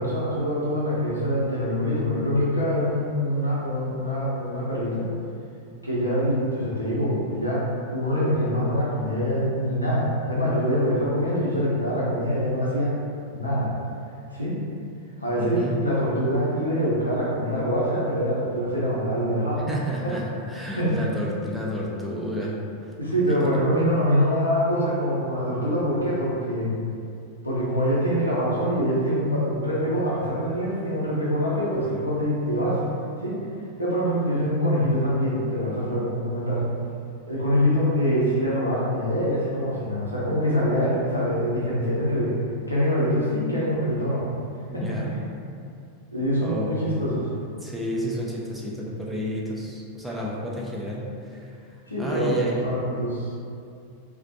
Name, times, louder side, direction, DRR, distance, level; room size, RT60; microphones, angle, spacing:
voice 1, 0.0-5.1 5.8-13.0 13.3-13.7 14.3-14.6 15.2-19.7 20.8-21.0 23.0-26.7 27.4-32.8 33.2-33.4 33.8-36.7 37.2-42.4 42.7-44.3 44.7-44.9 46.1-47.2 51.9-53.3, equal, 85° left, -7 dB, 0.6 m, -24 dB
voice 2, 15.4-15.8 19.7-22.6 22.8-22.9 23.3-23.4 44.7-45.2 46.4-47.0 47.6-51.5 52.0-52.6, equal, 5° right, -5 dB, 0.4 m, -31 dB
2.4 x 2.1 x 2.6 m, 2.4 s
figure-of-eight pair, 90°, 0 cm